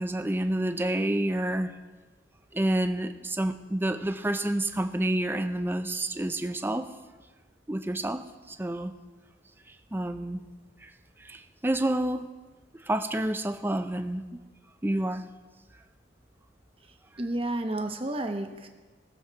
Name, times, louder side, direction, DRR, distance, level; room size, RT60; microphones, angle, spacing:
voice 1, 0.0-1.7 2.5-6.9 7.7-8.9 9.9-10.4 10.8-10.9 11.2-12.3 12.8-14.4 14.8-15.2, right 1 dB, 10° right, 8 dB, 0.5 m, -29 dB
voice 2, 17.2-18.7, right 1 dB, 30° right, 5 dB, 1.0 m, -31 dB
19.5 x 7.4 x 4.6 m, 1.3 s
head